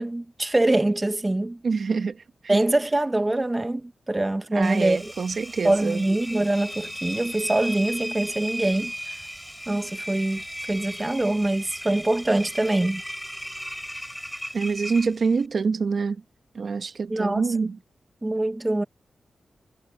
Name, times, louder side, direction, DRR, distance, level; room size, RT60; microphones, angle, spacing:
voice 1, 0.0-1.6 2.5-5.1 5.6-8.9 9.7-10.4 10.7-13.0 17.1-17.7 18.2-18.8, right 2 dB, 15° right, 1.4 m, -24 dB
voice 2, 1.6-2.6 4.5-6.1 14.5-16.2 16.5-17.8, right 5 dB, 55° right, 1.3 m, -26 dB
Engine, 4.6-15.5, equal, ahead, 5.3 m, -36 dB
wide cardioid pair, 115°, 0 cm